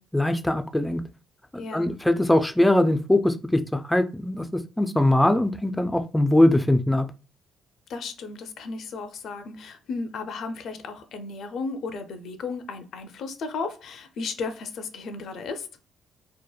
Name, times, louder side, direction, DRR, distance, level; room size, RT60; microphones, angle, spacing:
voice 1, 0.1-1.0 1.7-7.1, left 1 dB, 10° left, 0.3 m, -21 dB
voice 2, 1.6-1.9 7.9-15.7, left 4 dB, 70° left, 0.5 m, -34 dB
2.8 x 2.1 x 2.3 m
cardioid pair, 80°, 0 cm